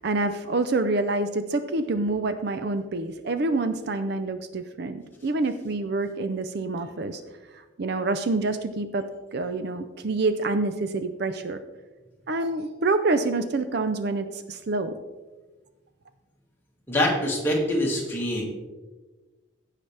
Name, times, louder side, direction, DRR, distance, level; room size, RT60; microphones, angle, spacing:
voice 1, 0.0-7.2 7.8-11.6 12.3-14.9, right 3 dB, 50° right, 10 dB, 0.5 m, -27 dB
voice 2, 16.9-18.4, left 1 dB, 10° left, -3 dB, 1.8 m, -24 dB
15.5 x 5.7 x 3.3 m, 1.2 s
head